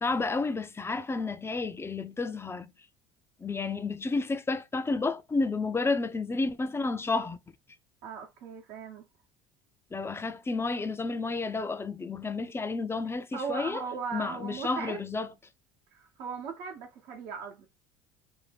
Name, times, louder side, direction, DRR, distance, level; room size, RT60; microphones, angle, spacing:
voice 1, 0.0-2.7 3.4-7.4 9.9-13.8 14.1-15.3, left 3 dB, 15° left, 0.5 m, -31 dB
voice 2, 8.0-9.0 13.3-15.0 15.9-17.7, right 6 dB, 65° right, 0.9 m, -38 dB
2.7 x 2.2 x 3.3 m
hypercardioid pair, 70°, 15 cm